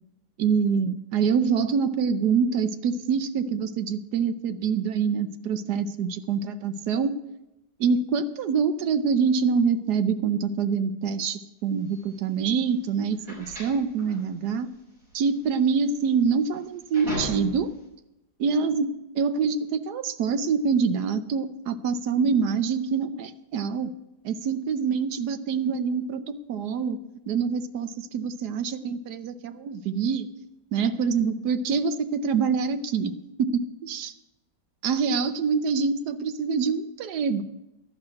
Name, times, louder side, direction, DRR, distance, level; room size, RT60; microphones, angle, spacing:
voice 1, 0.4-7.1 7.8-14.7 15.1-17.7 18.4-23.9 24.2-27.0 27.3-30.3 30.7-33.1 33.4-34.1 34.8-37.4, right 5 dB, 75° right, 11 dB, 1.3 m, -25 dB
sound 1, 11.9-17.8, right 1 dB, 55° right, 6.2 m, -38 dB
12.5 x 6.3 x 9.4 m, 0.95 s
omnidirectional pair, 1.8 m